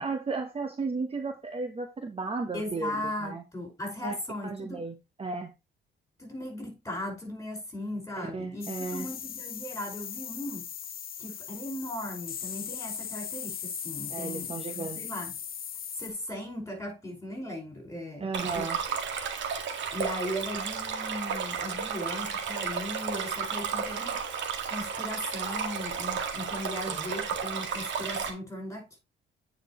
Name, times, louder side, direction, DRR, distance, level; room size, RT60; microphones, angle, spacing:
voice 1, 0.0-2.9 3.2-3.4 4.0-4.2 4.4-5.5 8.3-9.1 14.1-15.0 18.2-18.8 26.9-27.1, right 4 dB, 30° right, 1.1 m, -34 dB
voice 2, 2.5-4.9 6.2-10.7 11.2-15.3 16.0-18.7 19.9-24.2 24.7-29.0, left 1 dB, 15° left, 5.3 m, -37 dB
sound 1, 8.6-16.1, left 8 dB, 45° left, 0.7 m, -39 dB
Stream, 18.3-28.3, right 6 dB, 70° right, 1.9 m, -33 dB
9.0 x 5.1 x 3.1 m
cardioid pair, 90°, 20 cm